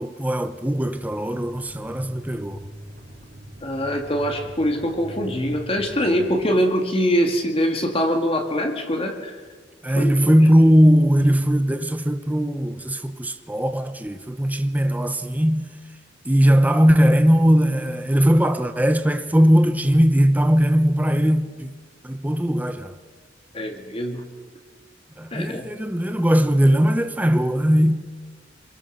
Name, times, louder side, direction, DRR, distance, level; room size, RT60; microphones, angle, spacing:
voice 1, 0.0-2.6 9.8-15.7 16.2-21.7 22.0-23.0 25.2-28.1, equal, 10° right, 0.8 m, -19 dB
sound 1, 0.6-6.3, equal, 60° right, 4.4 m, -41 dB
voice 2, 3.6-9.4 10.0-10.3 23.5-24.2 25.3-25.7, equal, 30° left, 2.1 m, -23 dB
26.5 x 22.0 x 6.6 m
head